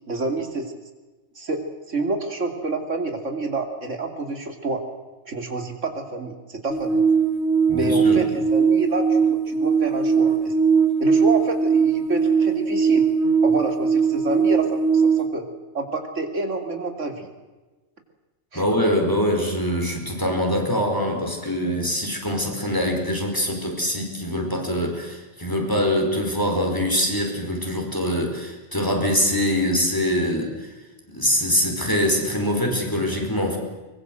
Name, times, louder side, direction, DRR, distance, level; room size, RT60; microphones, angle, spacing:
voice 1, 0.1-0.7 1.4-4.8 5.2-7.0 7.7-10.5 11.0-13.1 13.4-15.5 15.7-17.3 18.5-18.6, right 3 dB, 85° right, 5 dB, 3.2 m, -28 dB
sound 1, 6.7-15.2, right 5 dB, 65° right, 2.4 m, -20 dB
voice 2, 7.7-8.3 18.5-30.7 31.1-33.6, equal, 15° left, 2 dB, 4.7 m, -24 dB
23.5 x 21.0 x 7.7 m, 1.2 s
omnidirectional pair, 1.2 m